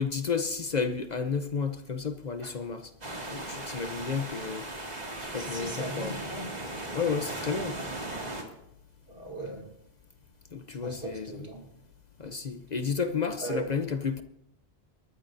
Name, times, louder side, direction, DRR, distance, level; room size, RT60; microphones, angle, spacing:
voice 1, 0.0-2.9 3.3-4.7 5.2-6.2 6.9-7.8 10.5-11.3 12.2-14.2, left 5 dB, 45° left, 0.9 m, -31 dB
sound 1, 3.0-8.4, right 1 dB, 40° right, 2.5 m, -37 dB
voice 2, 5.3-6.6 9.1-9.7 10.7-11.7 13.4-13.7, right 2 dB, 65° right, 3.1 m, -38 dB
28.0 x 14.0 x 2.7 m
omnidirectional pair, 1.0 m